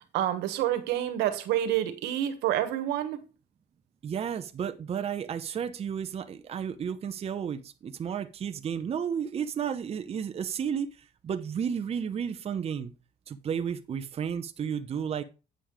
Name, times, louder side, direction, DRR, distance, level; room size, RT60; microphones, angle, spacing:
voice 1, 0.1-3.2, right 12 dB, 85° right, 1.4 m, -28 dB
voice 2, 4.0-12.9 13.3-15.2, right 7 dB, 35° right, 0.7 m, -32 dB
8.9 x 5.2 x 5.0 m
cardioid pair, 110°, 17 cm